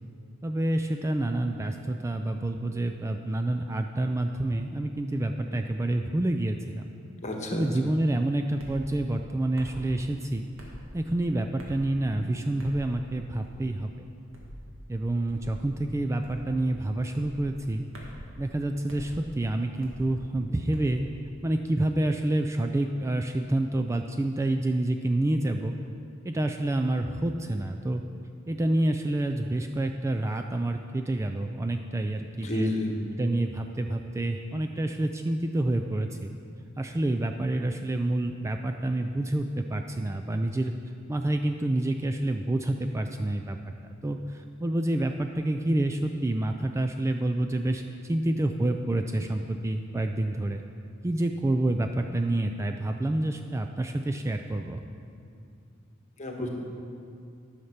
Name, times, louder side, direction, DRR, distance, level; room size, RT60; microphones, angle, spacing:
voice 1, 0.4-6.9 7.5-10.5 10.9-14.1 14.9-17.8 18.4-21.0 21.4-25.8 26.2-28.0 28.5-32.7 33.2-36.3 36.8-40.7 41.1-43.6 44.0-50.6 51.0-54.8, right 1 dB, 15° right, 5 dB, 0.3 m, -28 dB
voice 2, 7.2-7.6 32.4-32.9 56.2-56.5, left 2 dB, 35° left, 1 dB, 1.3 m, -31 dB
sound 1, 8.6-8.8 9.6-9.8 10.6-10.8 11.6-11.9 12.6-12.8 13.4-13.7 14.3-14.6 15.3-15.5 16.2-16.5 17.1-17.4 17.9-18.2 18.9-19.1 19.8-20.1 20.7-21.0, equal, 85° right, 1.9 m, -44 dB
11.0 x 6.5 x 5.8 m, 2.4 s
head